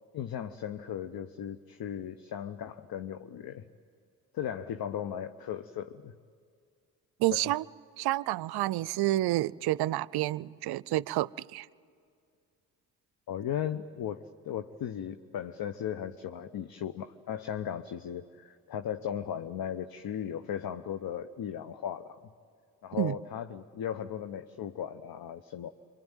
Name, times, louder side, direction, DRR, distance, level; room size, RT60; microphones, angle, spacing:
voice 1, 0.1-3.7 4.3-6.1 7.3-7.4 13.3-22.2 22.8-25.7, left 9 dB, 50° left, 0.9 m, -37 dB
voice 2, 7.2-7.6 8.0-11.7 23.0-23.1, right 16 dB, 55° right, 0.6 m, -29 dB
27.0 x 24.0 x 9.2 m
hypercardioid pair, 45°, 45 cm